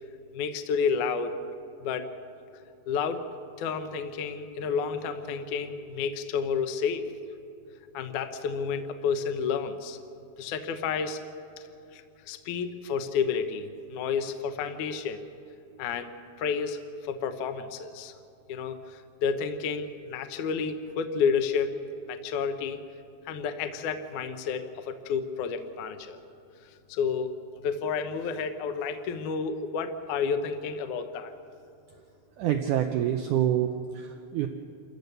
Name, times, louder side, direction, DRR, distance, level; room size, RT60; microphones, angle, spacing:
voice 1, 0.3-1.4 1.8-2.1 2.9-3.3 3.6-7.0 7.9-10.0 10.4-11.2 11.6-11.7 11.9-15.2 15.8-16.1 16.4-18.1 18.5-21.7 22.1-22.8 23.3-26.2 26.9-27.3 27.6-31.3, left 6 dB, 65° left, 8 dB, 2.1 m, -30 dB
voice 2, 32.4-34.5, right 11 dB, 90° right, 6 dB, 1.7 m, -27 dB
28.5 x 15.0 x 6.8 m, 2.6 s
omnidirectional pair, 4.6 m